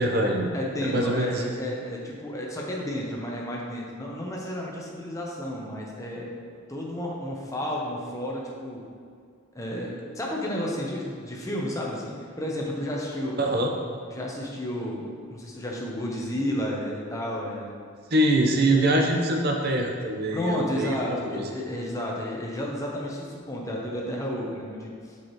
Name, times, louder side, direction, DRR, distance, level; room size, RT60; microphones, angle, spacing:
voice 1, 0.0-0.5 0.8-1.5 13.4-13.7 18.1-21.5, right 1 dB, 50° right, 1 dB, 0.8 m, -24 dB
voice 2, 0.5-6.3 6.7-8.8 9.5-13.4 14.1-17.7 18.7-18.9 20.3-25.1, left 1 dB, 15° left, -2 dB, 0.8 m, -32 dB
7.1 x 4.8 x 3.1 m, 2.2 s
head